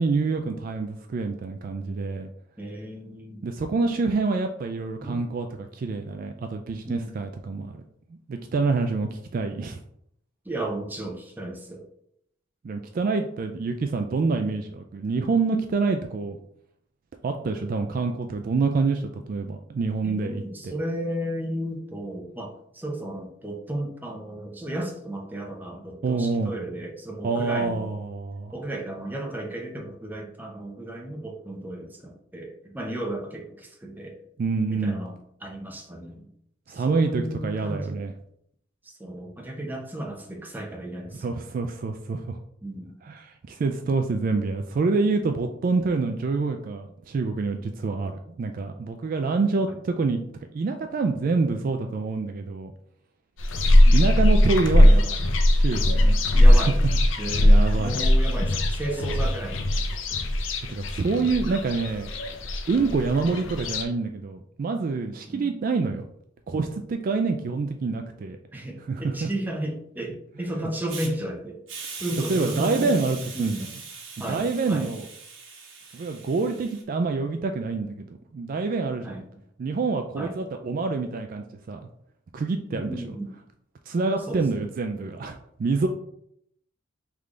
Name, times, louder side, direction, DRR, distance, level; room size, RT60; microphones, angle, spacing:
voice 1, 0.0-2.3 3.4-7.8 8.3-9.8 12.6-16.4 17.2-20.7 26.0-26.6 27.2-28.5 34.4-35.0 36.7-38.1 41.2-42.4 43.0-50.2 50.5-52.7 53.9-55.2 55.5-56.6 57.2-57.9 60.7-62.1 62.7-66.0 66.5-68.4 68.9-69.3 70.4-70.5 72.2-73.5 74.3-75.1 75.9-79.2 79.6-81.8 82.3-83.1 83.9-85.9, right 4 dB, 45° right, 5 dB, 0.3 m, -27 dB
voice 2, 2.6-3.4 5.0-5.2 6.9-7.1 10.4-11.8 20.0-27.9 28.5-34.2 34.7-35.1 35.4-36.3 36.7-38.0 38.8-41.5 42.6-43.0 53.9-54.0 56.3-56.8 57.2-59.6 65.3-65.5 68.5-71.6 72.0-73.0 73.3-73.7 74.2-74.9 79.0-79.2 80.2-80.3 82.7-83.3 84.3-84.7, right 1 dB, 10° right, 1 dB, 0.7 m, -34 dB
sound 1, 53.4-63.8, left 1 dB, 75° left, 0.6 m, -20 dB
Hiss, 70.9-71.1 71.7-76.8, right 5 dB, 75° right, 1.2 m, -40 dB
3.6 x 3.3 x 3.7 m, 0.72 s
head